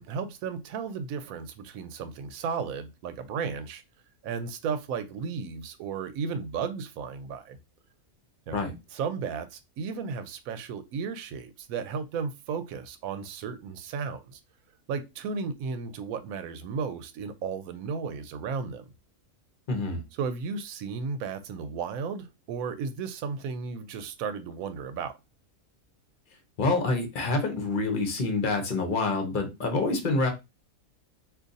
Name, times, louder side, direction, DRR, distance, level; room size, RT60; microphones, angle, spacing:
voice 1, 0.0-3.8 4.2-7.6 8.5-8.6 8.9-14.4 14.9-18.9 20.1-25.1, right 5 dB, 85° right, 1.0 m, -34 dB
voice 2, 19.7-20.0 26.6-30.3, left 3 dB, 45° left, 0.8 m, -27 dB
2.6 x 2.5 x 3.8 m
omnidirectional pair, 1.4 m